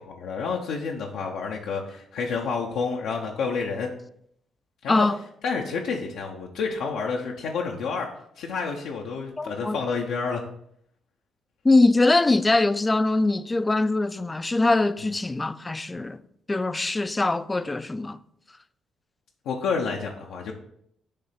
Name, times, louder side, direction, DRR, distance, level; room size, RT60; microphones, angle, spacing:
voice 1, 0.1-3.9 4.8-5.1 5.4-8.1 8.4-10.4 19.5-20.5, left 5 dB, 85° left, 0.7 m, -29 dB
voice 2, 9.4-9.8 11.6-16.2 16.5-18.2, left 2 dB, 20° left, 0.3 m, -22 dB
6.7 x 3.3 x 5.7 m
cardioid pair, 90°, 0 cm